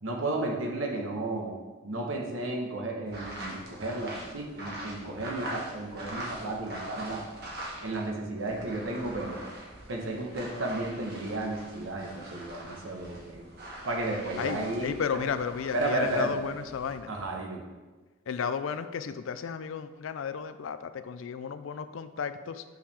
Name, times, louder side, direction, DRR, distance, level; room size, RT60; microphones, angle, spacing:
voice 1, 0.0-7.2 7.8-9.4 9.9-13.5 13.8-15.2 15.7-16.4 17.1-17.6, right 2 dB, 75° right, 1 dB, 1.1 m, -33 dB
sound 1, 3.1-8.1 8.4-16.9, right 1 dB, 50° right, 1.5 m, -43 dB
voice 2, 14.4-17.1 18.3-22.6, left 6 dB, 70° left, 12 dB, 0.4 m, -33 dB
6.4 x 5.8 x 3.4 m, 1.3 s
head